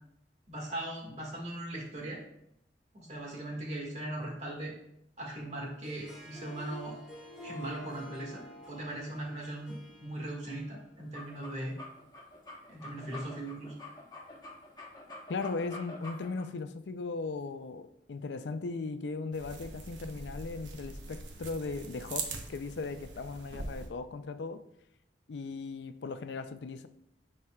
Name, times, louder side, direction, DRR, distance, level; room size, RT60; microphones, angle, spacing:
voice 1, 0.5-2.2 2.9-4.7 5.2-7.0 7.4-11.8 12.7-13.8, right 1 dB, 40° right, -2 dB, 1.7 m, -39 dB
Harp, 5.7-11.1, equal, 5° right, 1.6 m, -49 dB
sound 1, 11.0-16.5, left 2 dB, 25° left, 1.1 m, -47 dB
voice 2, 15.3-24.6 25.3-26.9, left 3 dB, 80° left, 11 dB, 0.4 m, -38 dB
sound 2, 19.3-23.9, right 3 dB, 90° right, 0.9 m, -42 dB
9.8 x 4.4 x 2.3 m, 0.78 s
head